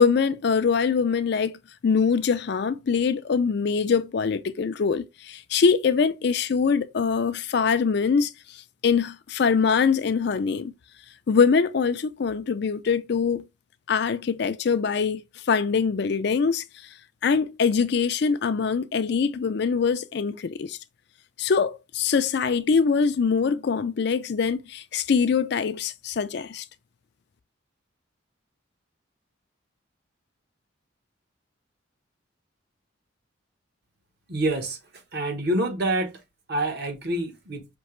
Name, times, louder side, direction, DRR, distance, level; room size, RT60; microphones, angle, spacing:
voice 1, 0.0-8.3 8.8-10.7 11.3-13.4 13.9-15.2 15.5-16.6 17.2-20.8 21.4-26.6, left 5 dB, 55° left, 0.4 m, -23 dB
voice 2, 34.3-36.2 36.5-37.7, right 1 dB, 50° right, 1.1 m, -27 dB
5.3 x 2.8 x 3.1 m
head